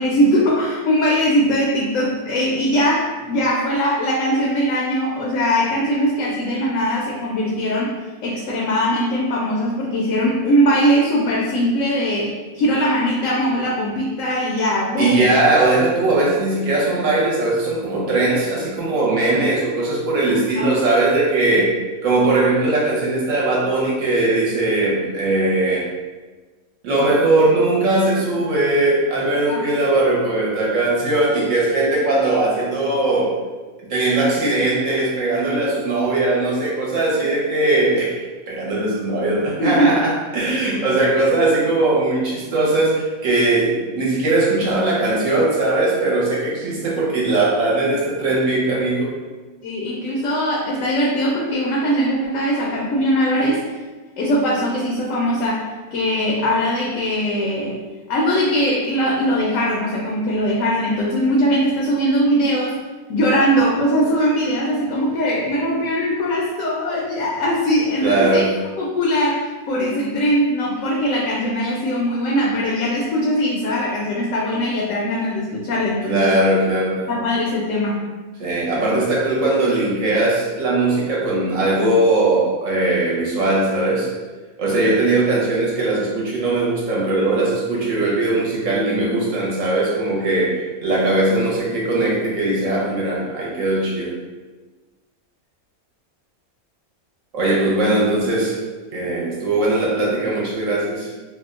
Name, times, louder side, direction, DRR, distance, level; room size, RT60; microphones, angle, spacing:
voice 1, 0.0-8.0 8.2-15.3 20.6-21.0 29.5-29.6 39.6-39.9 40.6-40.7 49.6-53.6 54.2-57.8 58.1-62.8 63.1-68.4 68.8-76.3 77.1-78.1, equal, 70° left, -4 dB, 0.9 m, -20 dB
voice 2, 15.0-25.9 26.8-33.3 33.9-49.1 68.0-68.5 76.1-77.0 78.4-84.1 84.6-94.1 97.3-98.6 98.9-101.1, right 2 dB, 65° right, -5 dB, 1.1 m, -19 dB
2.8 x 2.1 x 3.5 m, 1.3 s
omnidirectional pair, 1.5 m